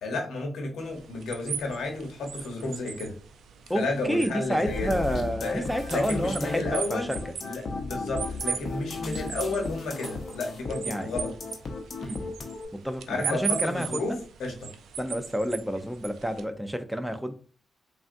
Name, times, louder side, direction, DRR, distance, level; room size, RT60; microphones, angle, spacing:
voice 1, 0.0-3.2 3.7-5.0 5.4-7.1 7.4-11.3 13.1-14.7, left 2 dB, 80° left, 1.0 m, -32 dB
sound 1, 0.8-16.4, right 7 dB, 80° right, 0.3 m, -39 dB
voice 2, 3.7-7.2 10.9-11.1 12.0-12.3 12.7-14.2 15.0-17.3, equal, 5° right, 0.5 m, -29 dB
sound 2, 4.7-12.7, left 3 dB, 60° left, 0.7 m, -35 dB
3.6 x 2.3 x 2.6 m
supercardioid pair, 55°, 0 cm